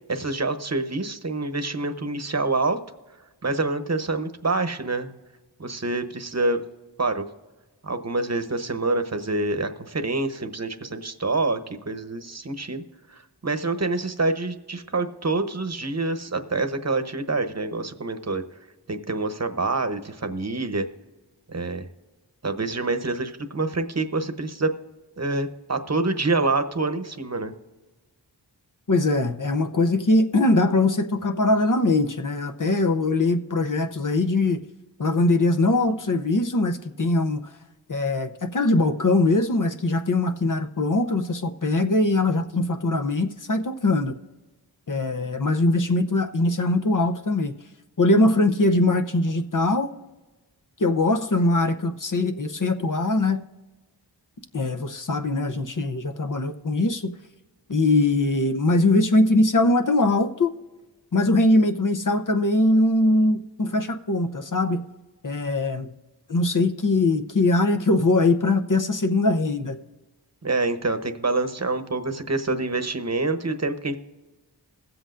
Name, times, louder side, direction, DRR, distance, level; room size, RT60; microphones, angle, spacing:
voice 1, 0.1-2.8 3.4-5.1 5.6-6.6 7.0-7.2 7.8-11.6 11.9-12.8 13.4-18.4 18.9-20.9 21.5-21.9 22.4-24.7 25.2-27.5 70.4-74.0, right 3 dB, 35° right, 8 dB, 0.9 m, -26 dB
voice 2, 28.9-34.6 35.0-37.4 37.9-44.2 44.9-47.5 48.0-49.9 50.8-53.4 54.5-57.1 57.7-60.5 61.1-64.9 65.2-65.9 66.3-69.8, left 2 dB, 45° left, 8 dB, 0.7 m, -21 dB
21.0 x 7.8 x 2.5 m, 1.2 s
wide cardioid pair, 45°, 43 cm